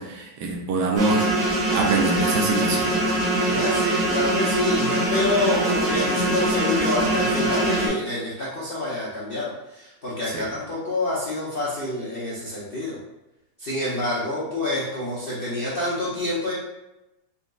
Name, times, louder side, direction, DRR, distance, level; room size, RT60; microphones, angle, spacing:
voice 1, 0.0-2.9 10.3-10.4, right 3 dB, 70° right, 0 dB, 1.1 m, -25 dB
sound 1, 1.0-7.9, right 1 dB, 45° right, 0.8 m, -23 dB
voice 2, 3.4-13.0 13.6-16.5, left 2 dB, 50° left, -8 dB, 0.6 m, -27 dB
4.1 x 3.6 x 2.3 m, 0.94 s
omnidirectional pair, 2.0 m